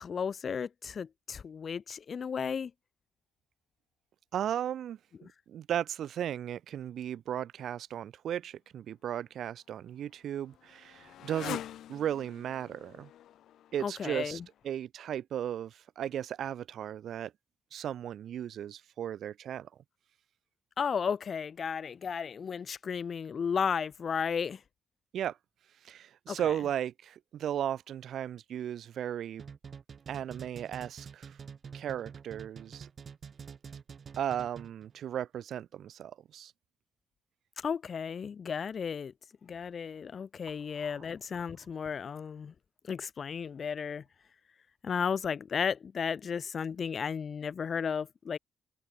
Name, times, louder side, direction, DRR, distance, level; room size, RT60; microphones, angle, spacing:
voice 1, 0.0-2.7 13.8-14.4 20.8-24.6 26.3-26.4 37.6-39.1 39.4-42.5 42.9-44.0 44.8-48.4, left 6 dB, 45° left, 0.7 m, -34 dB
voice 2, 4.3-5.0 5.5-11.6 11.9-13.1 13.7-17.3 17.7-19.7 25.1-25.4 25.8-29.4 30.1-31.4 31.7-32.9 34.2-36.5 40.8-41.0, right 10 dB, 70° right, 0.8 m, -36 dB
Motorcycle, 9.3-14.8, left 11 dB, 85° left, 2.0 m, -46 dB
sound 1, 29.4-34.9, right 6 dB, 40° right, 3.1 m, -47 dB
cardioid pair, 135°, 0 cm